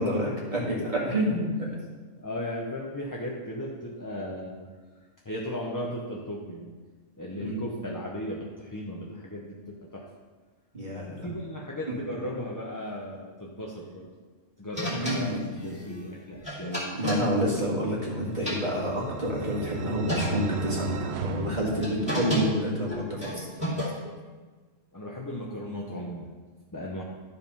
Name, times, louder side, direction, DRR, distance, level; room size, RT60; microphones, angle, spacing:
voice 1, 0.0-0.8 1.1-1.7 7.4-7.6 10.7-11.3 14.9-15.3 16.9-23.5, equal, 35° right, -5 dB, 2.3 m, -28 dB
voice 2, 0.8-1.4 2.2-4.7 5.2-6.8 7.2-10.1 11.2-14.1 14.6-16.9 24.9-26.3 26.7-27.0, left 1 dB, 20° left, -3 dB, 0.7 m, -36 dB
sound 1, 14.7-18.0 18.3-19.3 19.8-19.9 20.1-20.7 21.4-24.2, equal, 5° right, 2.7 m, -33 dB
sound 2, 18.0-22.6, right 5 dB, 60° right, 0.8 m, -35 dB
11.5 x 5.0 x 5.4 m, 1.4 s
omnidirectional pair, 1.4 m